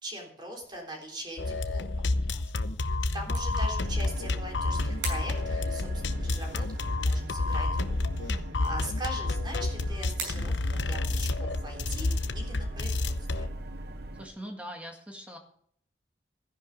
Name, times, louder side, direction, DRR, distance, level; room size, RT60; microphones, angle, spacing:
voice 1, 0.0-2.0 3.1-7.9 8.2-8.3 8.6-13.5, right 1 dB, 25° right, 1 dB, 3.6 m, -41 dB
sound 1, 0.6-14.8, right 4 dB, 80° right, 5.5 m, -48 dB
sound 2, 1.4-13.5, left 2 dB, 70° left, 0.8 m, -30 dB
voice 2, 2.1-2.8 8.3-8.7 14.2-15.4, equal, 5° right, 2 dB, 1.8 m, -44 dB
sound 3, 3.8-14.3, right 2 dB, 55° right, 0.9 m, -43 dB
14.0 x 10.5 x 5.2 m, 0.63 s
head